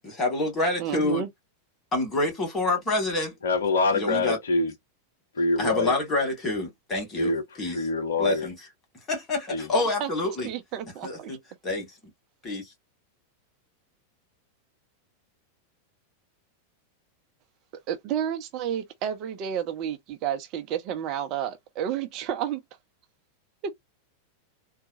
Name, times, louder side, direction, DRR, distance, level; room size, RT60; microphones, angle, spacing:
voice 1, 0.0-1.2 1.9-3.3 3.9-4.4 5.6-7.3 7.6-7.8 8.2-8.5 9.1-10.5 11.0-11.4 11.6-11.9 12.4-12.7, left 2 dB, 20° left, 2.2 m, -27 dB
voice 2, 0.8-1.3 10.0-10.1 10.4-11.4 17.9-22.6 23.6-23.7, right 9 dB, 40° right, 0.7 m, -31 dB
voice 3, 3.4-4.7 5.3-5.9 7.2-7.4 7.7-8.5 9.5-9.7, left 3 dB, 65° left, 0.6 m, -25 dB
4.0 x 2.2 x 2.7 m
figure-of-eight pair, 90°, 0 cm